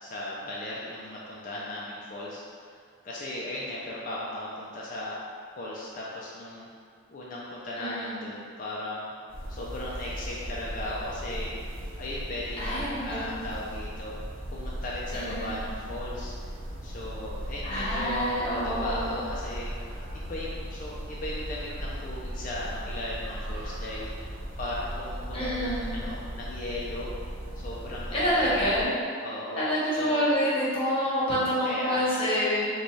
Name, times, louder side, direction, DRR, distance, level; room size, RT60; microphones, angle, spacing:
voice 1, 0.0-2.4 2.7-2.8 3.0-5.2 5.6-6.7 7.1-9.1 9.5-11.5 12.0-14.2 14.5-16.3 16.8-19.7 20.1-24.1 24.6-27.1 27.6-28.5 29.2-29.7 29.9-30.3 31.6-32.3, left 1 dB, 45° left, -6 dB, 0.4 m, -37 dB
voice 2, 7.8-8.2 12.6-13.5 15.1-15.6 17.6-19.1 25.3-25.9 28.1-28.9 29.6-32.7, equal, 30° left, -10 dB, 1.1 m, -27 dB
sound 1, 9.3-28.8, equal, 85° right, 0.6 m, -37 dB
3.1 x 2.3 x 3.9 m, 2.2 s
head